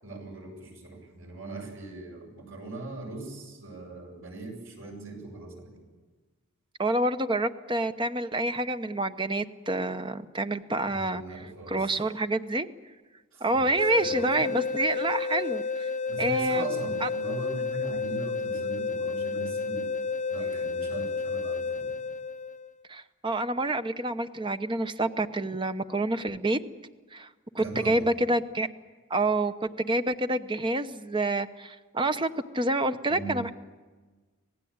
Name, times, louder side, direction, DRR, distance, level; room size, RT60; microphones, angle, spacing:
voice 1, 0.0-5.7 10.9-12.0 13.3-14.5 16.1-19.9 20.3-21.9 27.6-28.0 33.1-33.4, right 2 dB, 70° right, 1 dB, 7.8 m, -40 dB
voice 2, 6.8-12.7 13.4-15.9 16.2-16.7 17.0-17.1 22.9-26.6 27.1-27.3 27.5-28.7 29.1-33.5, right 2 dB, 20° right, 9 dB, 0.9 m, -28 dB
sound 1, 13.8-22.7, left 4 dB, 35° left, 0.7 m, -31 dB
26.0 x 18.5 x 8.8 m, 1.4 s
head